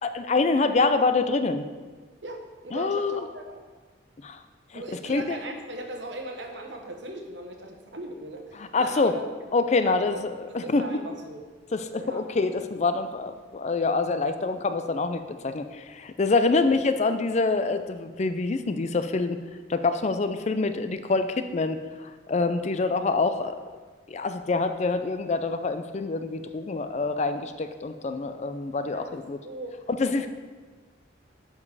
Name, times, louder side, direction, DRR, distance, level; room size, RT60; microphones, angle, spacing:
voice 1, 0.0-1.6 2.7-3.2 4.2-4.4 4.7-4.8 5.1-5.4 8.7-9.2 9.5-10.8 11.7-19.4 19.7-23.6 24.1-29.4 30.0-30.3, left 3 dB, 35° left, 9 dB, 0.4 m, -26 dB
voice 2, 2.2-3.6 4.7-9.3 9.7-10.2 10.6-11.4 12.0-12.3 16.5-16.7 28.9-29.2 29.4-30.3, right 1 dB, 70° right, 3 dB, 1.0 m, -39 dB
7.3 x 5.3 x 4.8 m, 1.4 s
head